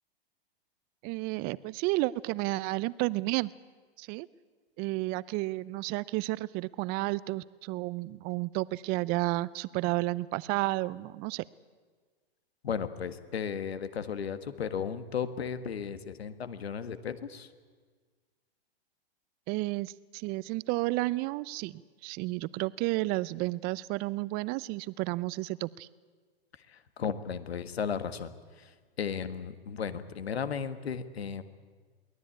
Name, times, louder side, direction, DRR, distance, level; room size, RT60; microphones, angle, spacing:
voice 1, 1.0-3.5 4.0-4.3 4.8-11.4 19.5-25.9, right 20 dB, 30° right, 20 dB, 0.6 m, -32 dB
voice 2, 12.6-17.5 26.7-28.7 29.0-31.4, left 7 dB, 85° left, 12 dB, 1.7 m, -35 dB
23.0 x 17.5 x 8.8 m, 1.5 s
hypercardioid pair, 125°, 31 cm